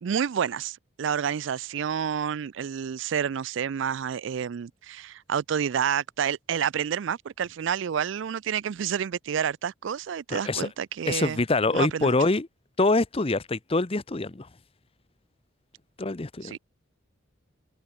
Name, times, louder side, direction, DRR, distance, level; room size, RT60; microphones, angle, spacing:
voice 1, 0.0-11.4 11.7-12.2 16.4-16.6, right 8 dB, 60° right, 0.4 m, -29 dB
voice 2, 10.3-10.7 11.0-12.5 12.8-14.5 16.0-16.5, left 2 dB, 30° left, 0.8 m, -25 dB
head